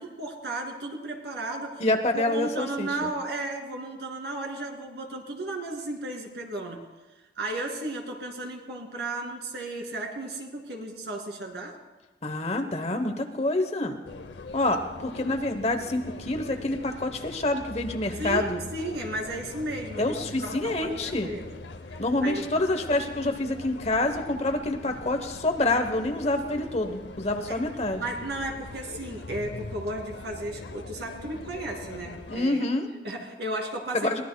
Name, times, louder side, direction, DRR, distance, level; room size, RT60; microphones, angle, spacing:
voice 1, 0.0-1.7 2.1-6.8 7.4-11.7 18.2-20.0 20.4-21.6 22.2-22.5 27.5-27.6 28.0-32.6 33.0-34.2, right 2 dB, 70° right, 1 dB, 2.4 m, -34 dB
voice 2, 1.8-2.9 12.2-14.0 14.5-18.6 20.0-21.3 22.0-28.0 32.3-32.9 33.9-34.2, left 2 dB, 35° left, 6 dB, 0.9 m, -27 dB
sound 1, 14.0-32.4, left 3 dB, 75° left, 0.6 m, -42 dB
22.0 x 17.5 x 2.2 m, 1.1 s
head